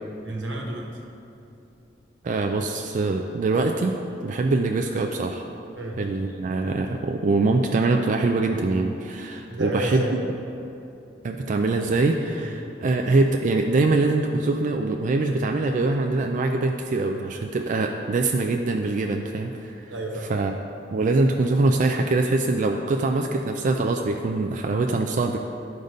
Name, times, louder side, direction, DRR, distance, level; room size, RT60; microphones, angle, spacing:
voice 1, 0.2-0.9 5.7-6.0 9.5-10.2 12.4-12.5 19.9-20.3, right 1 dB, 85° right, 0 dB, 1.2 m, -30 dB
voice 2, 2.2-3.9 4.2-5.4 6.0-10.0 11.2-19.9 20.3-20.5 20.9-25.4, right 3 dB, 45° right, 3 dB, 0.3 m, -23 dB
11.5 x 4.0 x 5.1 m, 2.8 s
head